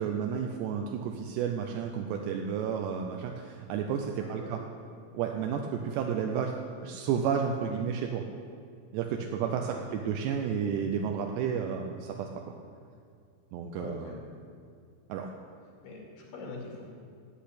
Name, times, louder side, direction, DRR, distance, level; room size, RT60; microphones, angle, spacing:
voice 1, 0.0-4.6 5.1-6.6 6.8-8.2 8.9-12.4 13.5-14.1 15.1-15.3, right 7 dB, 80° right, 3 dB, 2.5 m, -31 dB
voice 2, 4.2-4.6 9.6-9.9 13.8-14.2 15.8-16.9, left 3 dB, 65° left, -1 dB, 4.5 m, -43 dB
13.5 x 8.5 x 8.5 m, 2.3 s
omnidirectional pair, 5.8 m